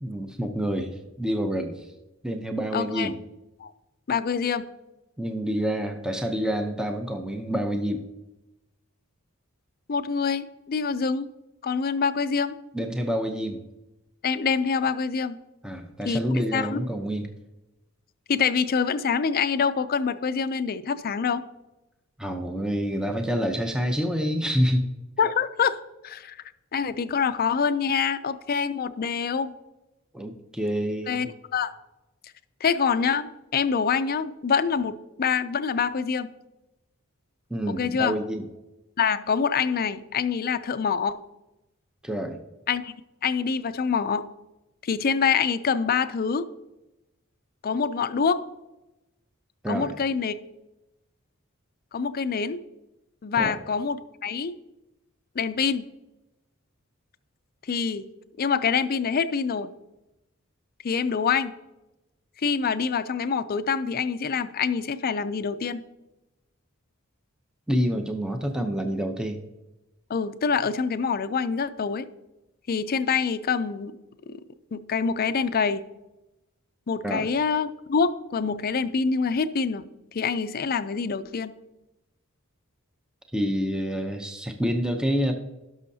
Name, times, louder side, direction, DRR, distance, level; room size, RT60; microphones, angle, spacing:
voice 1, 0.0-1.9 2.2-3.2 5.2-8.0 12.7-13.6 15.6-17.3 22.2-24.9 30.1-31.3 37.5-38.4 42.0-42.4 49.6-50.0 53.4-53.6 67.7-69.4 77.0-77.3 83.3-85.3, equal, 5° right, 4 dB, 0.6 m, -27 dB
voice 2, 2.7-3.1 3.6-3.7 4.1-4.7 9.9-11.3 11.6-12.6 14.2-15.4 16.1-16.2 16.5-16.8 18.3-21.4 25.2-25.8 26.0-26.4 26.7-29.5 31.1-31.7 32.6-36.3 37.7-38.2 39.0-41.2 42.7-43.0 43.2-44.3 44.8-46.5 47.6-48.4 49.7-50.3 51.9-52.6 53.2-54.6 55.4-55.8 57.7-58.1 58.4-59.7 60.8-61.5 62.4-65.8 70.1-72.1 72.7-73.9 74.3-74.4 74.7-75.8 76.9-79.8 80.1-81.5, left 6 dB, 45° left, 13 dB, 0.4 m, -25 dB
17.0 x 6.3 x 2.7 m, 0.99 s
head